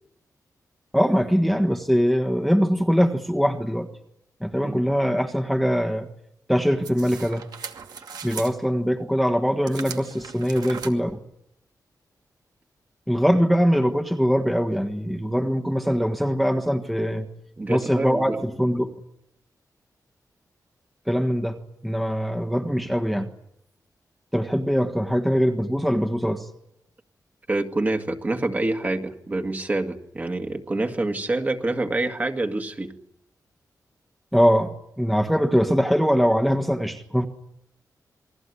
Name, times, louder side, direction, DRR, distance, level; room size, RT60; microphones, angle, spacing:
voice 1, 0.9-3.9 4.4-6.1 6.5-7.4 8.2-11.2 13.1-17.3 17.7-18.9 21.1-21.6 21.8-23.3 24.3-26.5 34.3-34.7 35.0-37.3, equal, ahead, 3 dB, 1.4 m, -22 dB
sound 1, 6.8-8.5 9.7-10.9, right 6 dB, 80° right, 2.5 m, -38 dB
voice 2, 17.6-18.4 22.6-22.7 27.5-32.9, right 2 dB, 25° right, 5 dB, 1.9 m, -27 dB
28.5 x 21.5 x 9.7 m, 0.79 s
wide cardioid pair, 155°, 7 cm